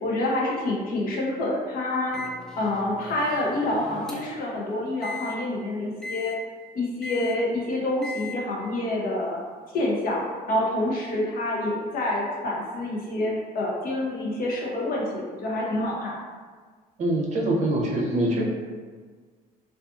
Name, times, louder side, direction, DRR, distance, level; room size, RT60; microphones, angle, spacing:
voice 1, 0.0-2.2 2.6-6.3 6.7-9.4 9.7-10.2 10.5-16.2, left 1 dB, 60° left, -4 dB, 0.7 m, -27 dB
Microwave oven, 2.1-4.5 5.0-5.3 6.0-6.4 7.0-7.4 8.0-8.4, left 3 dB, 5° left, 0.3 m, -38 dB
voice 2, 17.0-18.4, right 1 dB, 45° right, -2 dB, 0.6 m, -24 dB
2.5 x 2.4 x 2.4 m, 1.5 s
cardioid pair, 110°, 17 cm